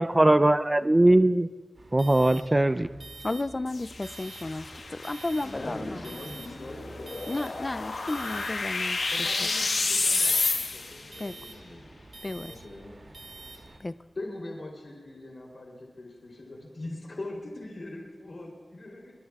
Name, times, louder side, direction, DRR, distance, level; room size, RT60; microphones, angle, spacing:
voice 1, 0.0-1.5 1.9-2.9, right 1 dB, 25° right, 10 dB, 0.5 m, -20 dB
sound 1, 1.7-13.8, right 3 dB, 55° right, 2.5 m, -47 dB
voice 2, 3.2-5.9 7.3-9.0 11.2-11.3 12.2-12.5 13.8-13.9, left 2 dB, 40° left, 15 dB, 0.3 m, -33 dB
sound 2, 3.7-11.1, left 3 dB, 85° left, 1.3 m, -30 dB
voice 3, 5.4-7.6 9.1-11.9 12.5-13.0 14.1-19.1, left 2 dB, 65° left, -2 dB, 3.2 m, -41 dB
23.5 x 20.5 x 2.4 m, 1.3 s
wide cardioid pair, 55°, 0 cm